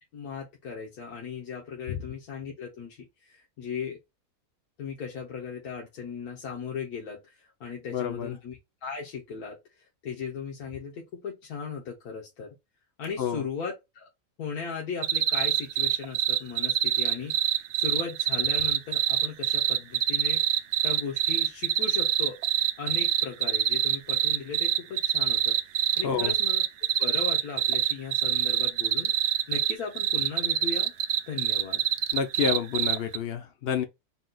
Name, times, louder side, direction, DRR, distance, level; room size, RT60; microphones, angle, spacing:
voice 1, 0.1-4.0 4.8-12.5 13.0-14.1 14.4-22.4 22.8-25.6 26.0-26.6 27.0-30.9 31.3-31.8, left 6 dB, 80° left, 1.5 m, -37 dB
voice 2, 7.9-8.4 13.2-13.4 26.0-26.3 32.1-33.8, left 8 dB, 55° left, 0.7 m, -29 dB
sound 1, 15.0-33.2, right 10 dB, 70° right, 0.7 m, -25 dB
4.1 x 2.4 x 3.8 m
omnidirectional pair, 1.6 m